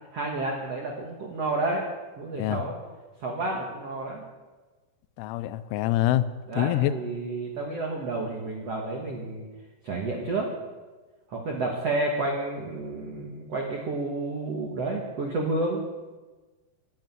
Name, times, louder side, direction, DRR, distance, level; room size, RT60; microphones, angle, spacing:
voice 1, 0.1-1.8 2.2-2.7 3.2-4.2 6.5-9.4 9.8-10.5 11.3-15.8, right 2 dB, 85° right, 0 dB, 1.4 m, -30 dB
voice 2, 5.2-6.3 6.6-6.9, left 14 dB, 85° left, 13 dB, 3.0 m, -25 dB
10.5 x 9.8 x 9.3 m, 1.3 s
omnidirectional pair, 5.5 m